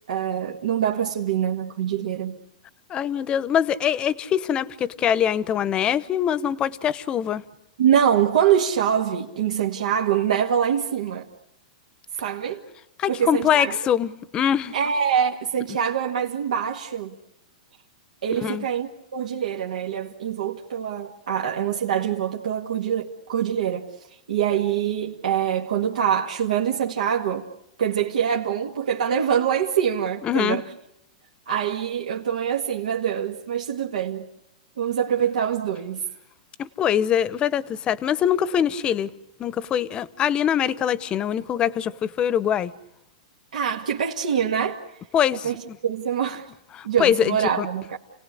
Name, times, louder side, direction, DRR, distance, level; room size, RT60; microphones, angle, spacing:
voice 1, 0.1-2.4 7.8-11.3 12.2-12.6 13.1-13.9 14.7-17.2 18.2-23.9 24.3-27.5 27.8-30.6 31.5-34.3 34.8-36.0 43.5-44.8 45.4-46.5 46.8-48.0, right 8 dB, 80° right, 1.9 m, -24 dB
voice 2, 2.9-7.4 13.0-14.7 18.4-18.7 30.2-30.6 36.6-39.1 39.4-42.7 45.1-45.8 46.7-47.7, left 9 dB, 25° left, 0.9 m, -23 dB
29.5 x 18.0 x 9.9 m
hypercardioid pair, 140°, 4 cm